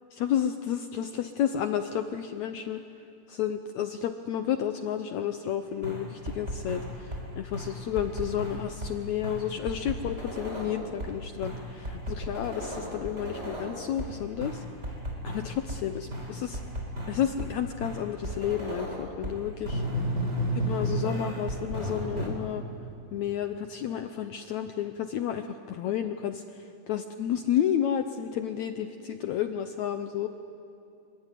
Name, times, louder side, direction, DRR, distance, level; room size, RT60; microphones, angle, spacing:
voice 1, 0.1-2.8 3.3-14.6 15.2-16.6 17.1-19.9 20.5-22.6 23.1-30.3, left 9 dB, 75° left, 8 dB, 1.7 m, -31 dB
sound 1, 5.8-7.2 7.5-8.9 9.2-11.1 11.4-14.1 14.4-15.8 16.1-17.5 17.8-19.4 19.6-22.3, equal, 20° right, 4.6 m, -33 dB
25.5 x 23.0 x 9.2 m, 2.7 s
omnidirectional pair, 4.1 m